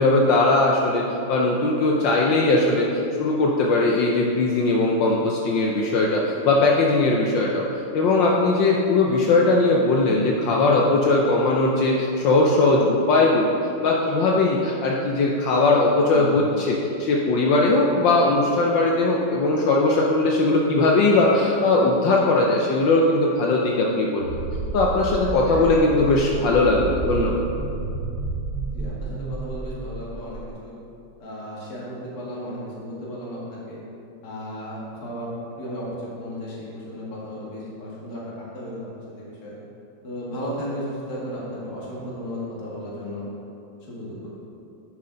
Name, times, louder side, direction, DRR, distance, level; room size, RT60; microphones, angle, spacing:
voice 1, 0.0-2.9 3.2-7.7 7.9-13.5 13.8-24.3 24.7-27.4, left 2 dB, 75° left, -1 dB, 1.4 m, -19 dB
voice 2, 16.1-16.4 25.4-25.7 28.7-30.7 31.2-33.8 34.2-35.3 35.6-35.9 36.2-38.9 39.1-39.5 40.0-43.2 43.9-44.2, equal, 50° left, -6 dB, 2.3 m, -34 dB
sound 1, 24.2-30.5, right 3 dB, 70° right, 1.5 m, -30 dB
11.0 x 6.0 x 3.9 m, 2.7 s
omnidirectional pair, 2.1 m